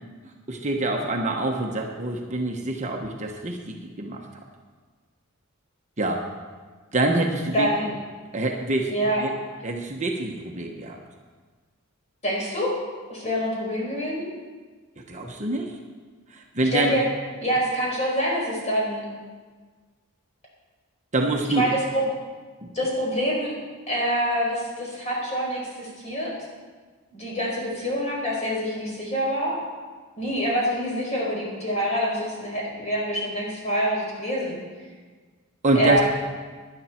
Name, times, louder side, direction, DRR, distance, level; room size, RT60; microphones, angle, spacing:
voice 1, 0.5-4.2 6.0-6.2 6.9-7.7 8.3-8.9 9.2-9.3 9.6-11.0 15.1-15.7 16.3-17.0 21.1-21.6 22.6-22.7 35.6-36.0, right 2 dB, 35° right, 1 dB, 1.1 m, -25 dB
voice 2, 7.5-7.9 8.9-9.2 12.2-12.7 13.1-14.3 16.7-17.0 17.4-19.0 21.5-22.1 22.7-23.5 23.9-26.3 27.1-29.6 30.2-34.6 35.7-36.0, equal, 30° left, -4 dB, 4.7 m, -26 dB
17.5 x 11.0 x 4.4 m, 1.5 s
head